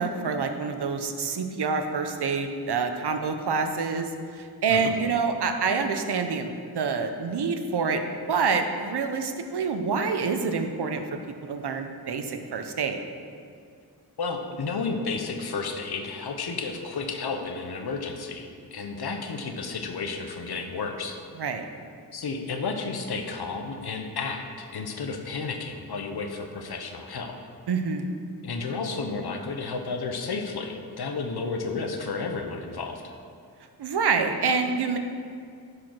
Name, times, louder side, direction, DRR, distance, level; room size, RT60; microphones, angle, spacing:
voice 1, 0.0-8.0 8.3-13.0 21.4-21.6 27.7-28.1 33.8-35.0, right 5 dB, 75° right, 6 dB, 0.9 m, -27 dB
voice 2, 14.2-21.2 22.1-27.4 28.4-33.1, left 4 dB, 70° left, 4 dB, 1.1 m, -32 dB
11.0 x 5.0 x 6.1 m, 2.3 s
cardioid pair, 75°, 40 cm